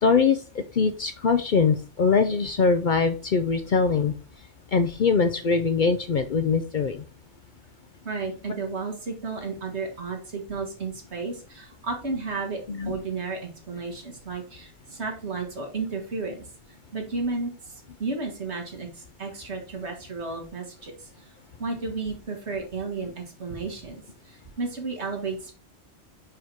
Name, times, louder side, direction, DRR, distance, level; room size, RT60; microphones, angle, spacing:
voice 1, 0.0-4.1 4.7-7.0 12.7-12.9, left 5 dB, 55° left, 9 dB, 0.6 m, -22 dB
voice 2, 8.0-12.6 12.9-16.5 16.9-21.3 21.6-25.5, right 4 dB, 70° right, 1 dB, 2.1 m, -33 dB
5.5 x 4.9 x 4.5 m, 0.36 s
omnidirectional pair, 1.2 m